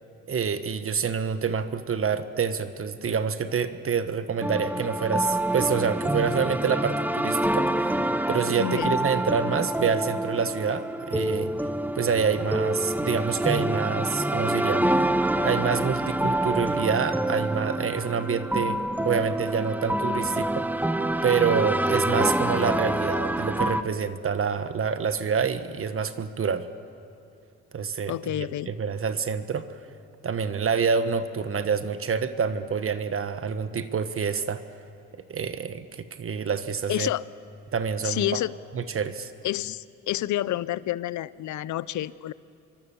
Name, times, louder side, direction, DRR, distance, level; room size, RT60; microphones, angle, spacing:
voice 1, 0.3-8.0 8.3-11.5 11.9-15.1 15.4-20.9 21.2-26.7 27.7-29.6 30.2-34.6 35.1-37.1 37.7-38.4 38.7-39.3, right 6 dB, 45° right, 10 dB, 1.3 m, -27 dB
sound 1, 4.4-23.8, right 1 dB, 5° right, 1.0 m, -27 dB
voice 2, 8.6-9.0 28.1-28.7 36.9-37.3 38.0-38.6 39.4-42.3, left 14 dB, 75° left, 18 dB, 0.7 m, -29 dB
27.0 x 24.0 x 7.2 m, 2.6 s
cardioid pair, 90°, 30 cm